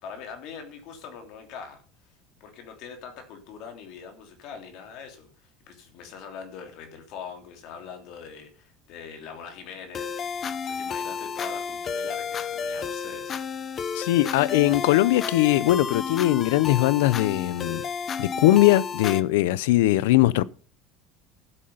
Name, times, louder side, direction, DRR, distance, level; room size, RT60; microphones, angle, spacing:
voice 1, 0.0-1.8 2.4-10.2 10.6-13.3, left 6 dB, 55° left, 3.2 m, -42 dB
sound 1, 9.9-19.2, left 6 dB, 30° left, 0.9 m, -31 dB
voice 2, 13.9-17.8 18.2-20.4, left 16 dB, 85° left, 0.6 m, -20 dB
12.5 x 7.7 x 5.6 m
cardioid pair, 145°, 0 cm